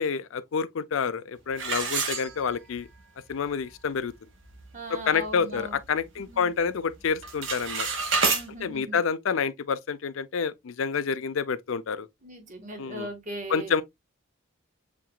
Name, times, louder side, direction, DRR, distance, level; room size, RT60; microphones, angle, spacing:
voice 1, 0.0-2.9 3.3-4.1 4.9-7.9 8.6-12.1 12.8-13.1 13.5-13.8, left 6 dB, 75° left, 0.4 m, -28 dB
sound 1, 1.6-2.8 3.3-3.4 3.9-4.0 4.4-4.7 5.2-6.3 6.6-6.9 7.2-8.4, right 4 dB, 70° right, 1.1 m, -28 dB
voice 2, 4.7-5.8 6.2-6.5 8.3-9.0 12.2-13.8, right 1 dB, 40° right, 1.5 m, -39 dB
7.1 x 2.9 x 2.2 m
head